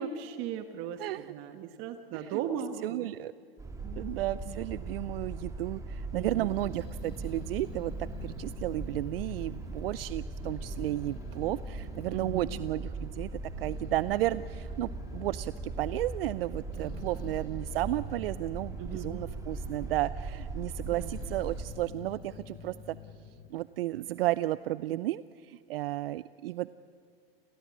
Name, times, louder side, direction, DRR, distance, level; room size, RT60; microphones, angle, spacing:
voice 1, 0.0-3.1 3.8-4.2 4.5-4.6 6.1-6.5 12.1-12.6 16.8-17.1 18.8-19.2 20.9-21.1 24.9-25.0, right 8 dB, 40° right, 8 dB, 1.4 m, -38 dB
voice 2, 1.0-1.3 2.1-2.4 2.8-3.3 4.0-23.0 23.5-26.7, right 15 dB, 70° right, 17 dB, 0.6 m, -33 dB
sound 1, 3.6-21.6, right 3 dB, 10° right, 2.4 m, -39 dB
Growling, 6.3-10.1 10.4-12.7 13.3-19.1 19.5-20.2 20.6-24.4, left 5 dB, 30° left, 2.1 m, -50 dB
29.5 x 16.5 x 8.5 m, 2.1 s
hypercardioid pair, 130°, 30 cm